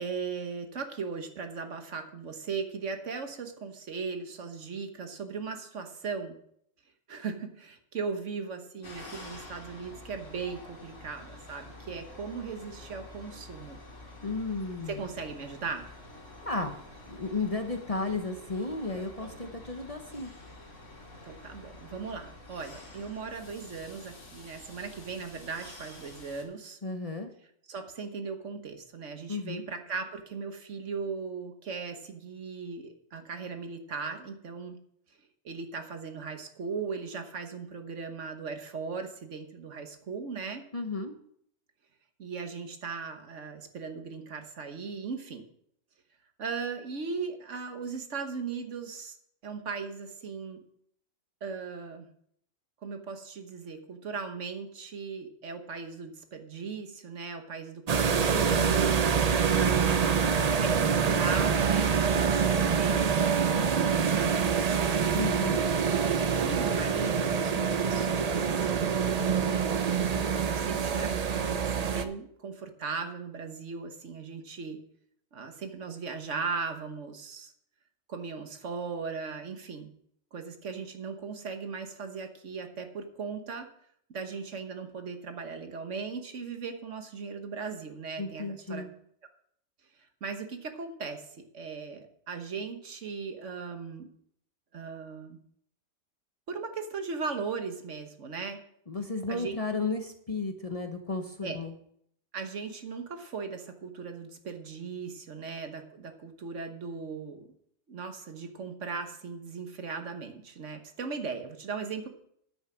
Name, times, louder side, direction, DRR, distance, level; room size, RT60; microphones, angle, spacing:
voice 1, 0.0-6.4 7.1-13.8 14.9-15.9 21.2-26.8 27.7-34.8 35.4-40.7 42.2-45.4 46.4-49.2 49.4-50.6 51.4-52.1 52.8-58.9 59.5-60.3 60.6-65.0 65.8-69.0 70.0-74.8 75.3-77.5 78.1-79.9 80.3-83.7 84.1-88.8 90.2-94.1 94.7-95.4 96.5-98.6 99.3-99.5 101.4-101.6 102.3-107.5 107.9-112.1, right 5 dB, 65° right, 6 dB, 1.5 m, -38 dB
sound 1, 8.8-26.4, left 2 dB, 65° left, 2.6 m, -48 dB
voice 2, 14.2-15.0 16.4-16.8 17.1-20.3 26.8-27.3 29.3-29.6 40.7-41.1 65.1-65.6 88.2-88.9 98.9-101.7, left 3 dB, 30° left, 5 dB, 0.8 m, -33 dB
sound 2, 57.9-72.1, right 6 dB, 45° right, 0.5 m, -26 dB
10.5 x 8.0 x 6.0 m, 0.69 s
omnidirectional pair, 1.4 m